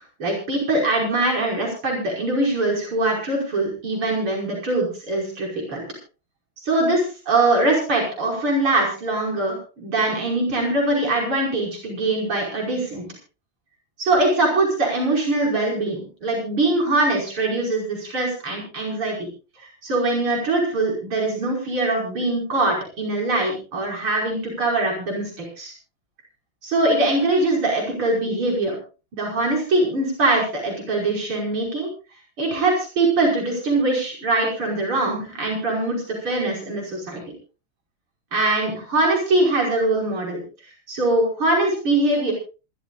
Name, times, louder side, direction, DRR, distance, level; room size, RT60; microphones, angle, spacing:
voice 1, 0.0-5.8 6.6-9.6 9.8-13.0 14.0-19.3 19.8-25.7 26.6-28.8 29.1-31.9 32.4-37.2 38.3-40.4 40.9-42.3, right 2 dB, 75° right, -1 dB, 6.2 m, -22 dB
26.5 x 13.0 x 2.5 m, 0.33 s
omnidirectional pair, 2.4 m